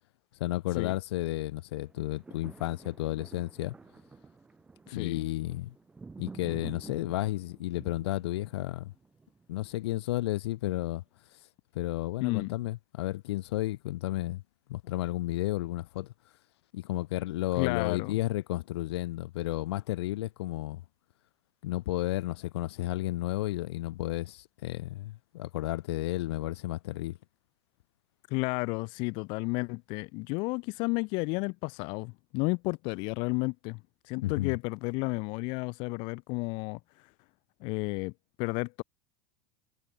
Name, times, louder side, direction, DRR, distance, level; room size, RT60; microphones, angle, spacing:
voice 1, 0.4-3.7 4.9-5.7 6.2-8.9 9.5-11.0 11.7-14.4 14.7-16.1 16.7-20.8 21.6-27.2 34.2-34.5, left 16 dB, 85° left, 1.6 m, -32 dB
sound 1, 1.8-10.1 10.6-10.7, right 4 dB, 10° right, 7.8 m, -50 dB
voice 2, 4.9-5.3 12.2-12.6 17.6-18.2 28.3-36.8 37.6-38.1 38.4-38.8, left 29 dB, 40° left, 0.7 m, -32 dB
supercardioid pair, 175°, 13 cm